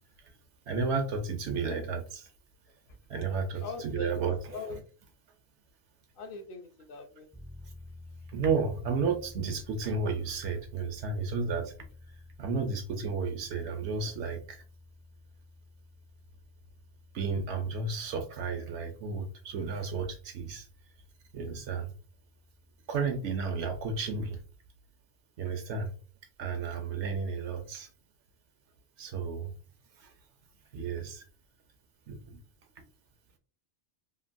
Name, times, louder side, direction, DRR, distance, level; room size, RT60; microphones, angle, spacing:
voice 1, 0.7-2.3 3.1-4.4 7.6-7.7 8.3-11.7 12.1-14.6 17.1-20.7 21.3-21.9 22.9-24.4 25.4-25.9 26.4-27.9 29.0-29.5 29.9-30.1 30.7-31.2 32.1-32.4 32.8-32.9, right 4 dB, 80° right, 6 dB, 0.9 m, -32 dB
voice 2, 3.6-4.2 4.5-4.8 6.2-7.3, left 3 dB, 60° left, 5 dB, 0.6 m, -41 dB
sound 1, 7.3-23.7, left 2 dB, 15° left, 0.4 m, -53 dB
3.0 x 2.4 x 2.5 m, 0.38 s
omnidirectional pair, 1.2 m